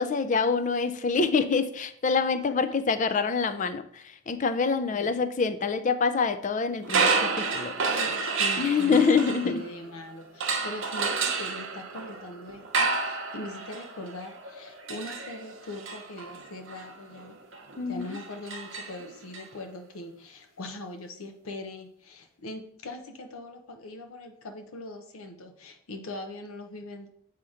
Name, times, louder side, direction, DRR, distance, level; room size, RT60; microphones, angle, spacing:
voice 1, 0.0-7.7 8.6-9.6 17.8-18.2, left 5 dB, 35° left, 11 dB, 0.4 m, -26 dB
voice 2, 4.7-5.1 7.8-9.1 9.4-17.4 17.9-27.1, left 1 dB, 90° left, 5 dB, 0.7 m, -41 dB
sound 1, 6.8-9.9 10.4-19.4, right 4 dB, 60° right, 0.8 m, -30 dB
7.6 x 2.8 x 4.9 m, 0.66 s
head